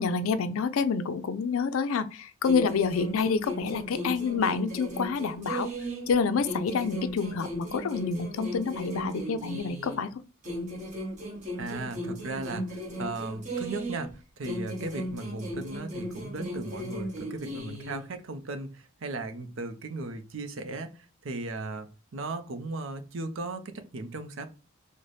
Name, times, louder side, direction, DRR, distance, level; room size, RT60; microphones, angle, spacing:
voice 1, 0.0-5.7 6.1-10.1, left 5 dB, 75° left, 0.4 m, -28 dB
sound 1, 2.4-6.1 6.4-10.1 10.4-14.1 14.4-18.1, equal, 35° right, 1.0 m, -36 dB
voice 2, 11.6-24.5, right 2 dB, 60° right, 0.6 m, -37 dB
3.9 x 2.1 x 3.2 m
head